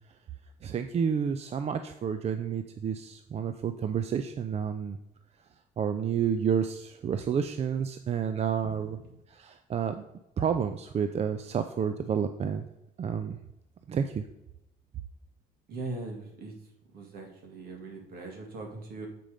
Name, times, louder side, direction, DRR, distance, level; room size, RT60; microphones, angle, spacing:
voice 1, 0.6-5.0 5.8-9.0 9.4-10.0 10.4-12.6 13.0-13.4 13.9-14.2, right 7 dB, 40° right, 9 dB, 0.5 m, -30 dB
voice 2, 8.8-9.2 15.7-16.5 16.9-19.1, right 2 dB, 65° right, 2 dB, 2.2 m, -40 dB
7.6 x 5.2 x 5.0 m, 0.89 s
cardioid pair, 110°, 17 cm